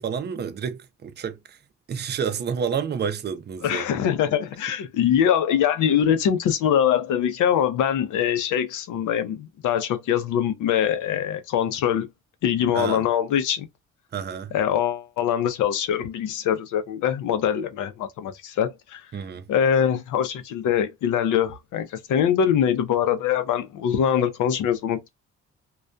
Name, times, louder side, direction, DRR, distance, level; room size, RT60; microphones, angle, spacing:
voice 1, 0.0-1.6 1.9-4.0 12.7-13.0 14.1-14.5 19.1-19.5, right 7 dB, 35° right, 0.5 m, -29 dB
voice 2, 3.6-12.1 12.4-13.7 14.5-19.0 19.5-25.1, left 9 dB, 80° left, 0.6 m, -23 dB
2.3 x 2.2 x 2.5 m
cardioid pair, 90°, 30 cm